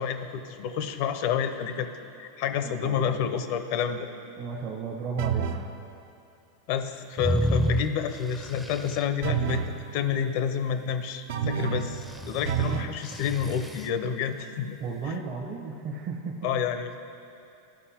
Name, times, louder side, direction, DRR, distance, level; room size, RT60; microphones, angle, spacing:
voice 1, 0.0-1.9 2.2-4.1 6.7-14.8 15.0-15.1 16.4-17.0, left 7 dB, 60° left, 9 dB, 0.5 m, -29 dB
voice 2, 2.6-3.2 4.4-5.5 14.8-16.6, right 4 dB, 55° right, -2 dB, 0.8 m, -34 dB
sound 1, 5.2-5.7 9.2-9.8 11.3-12.0 12.4-13.0, right 8 dB, 75° right, 0.5 m, -28 dB
sound 2, 7.2-9.0 11.8-13.9, equal, ahead, 0.4 m, -30 dB
13.0 x 5.4 x 2.8 m, 2.6 s
hypercardioid pair, 95°, 0 cm